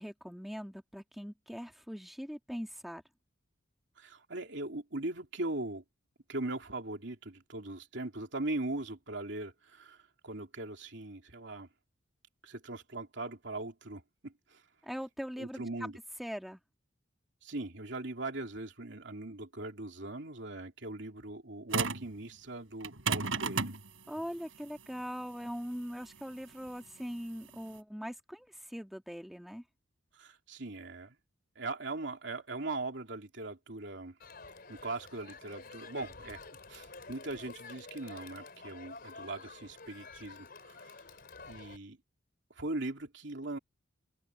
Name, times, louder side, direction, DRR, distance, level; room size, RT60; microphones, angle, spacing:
voice 1, 0.0-3.0 14.8-15.9 16.2-16.6 24.1-29.6, equal, ahead, 1.9 m, -41 dB
voice 2, 4.0-5.8 6.3-11.7 12.4-14.6 15.4-16.0 17.4-23.7 30.1-31.2 31.5-34.2 34.7-36.4 36.7-41.0 41.5-42.0 42.5-43.6, right 2 dB, 60° right, 3.1 m, -40 dB
sound 1, 21.7-22.1 22.8-27.8, right 4 dB, 85° right, 3.6 m, -34 dB
Crowd, 34.2-41.8, left 4 dB, 50° left, 4.4 m, -50 dB
open air
head